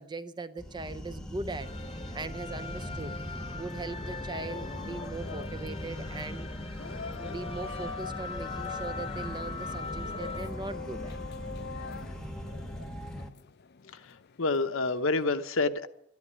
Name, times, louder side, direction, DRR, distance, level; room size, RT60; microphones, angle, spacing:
voice 1, 0.0-1.7 2.1-3.1 3.5-6.5 7.2-11.1, right 3 dB, 20° right, 0.6 m, -39 dB
sound 1, 0.6-13.3, equal, 5° left, 1.1 m, -40 dB
sound 2, 1.6-10.5, left 3 dB, 30° left, 1.0 m, -41 dB
sound 3, 4.3-15.2, left 6 dB, 50° left, 0.5 m, -44 dB
voice 2, 13.9-15.9, left 3 dB, 70° left, 1.0 m, -28 dB
13.0 x 11.0 x 9.9 m
head